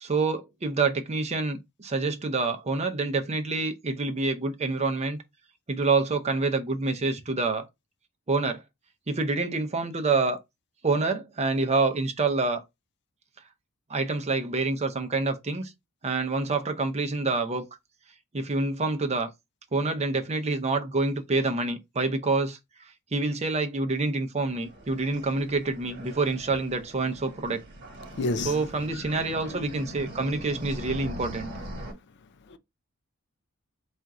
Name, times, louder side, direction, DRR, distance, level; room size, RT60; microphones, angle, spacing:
voice 1, 0.0-5.2 5.7-7.7 8.3-8.6 9.1-10.4 10.8-12.6 13.9-15.7 16.0-17.7 18.3-19.3 19.7-22.6 23.1-27.6 28.4-31.5, right 3 dB, 30° right, 0.6 m, -27 dB
sound 1, 24.4-31.9, right 1 dB, 50° right, 1.3 m, -41 dB
voice 2, 28.2-28.6 28.9-29.7 32.5-32.6, left 3 dB, 50° left, 0.4 m, -32 dB
4.3 x 2.4 x 3.7 m
head